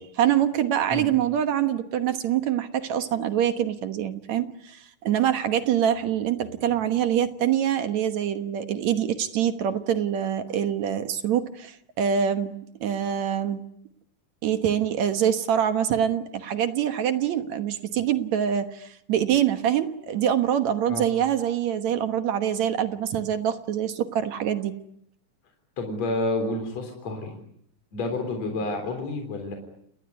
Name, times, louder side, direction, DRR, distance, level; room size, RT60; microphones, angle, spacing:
voice 1, 0.0-13.6 14.4-24.7, right 9 dB, 65° right, 9 dB, 2.4 m, -25 dB
voice 2, 25.8-27.4 27.9-29.6, left 2 dB, 55° left, 5 dB, 4.8 m, -29 dB
30.0 x 19.5 x 9.6 m, 0.73 s
omnidirectional pair, 3.7 m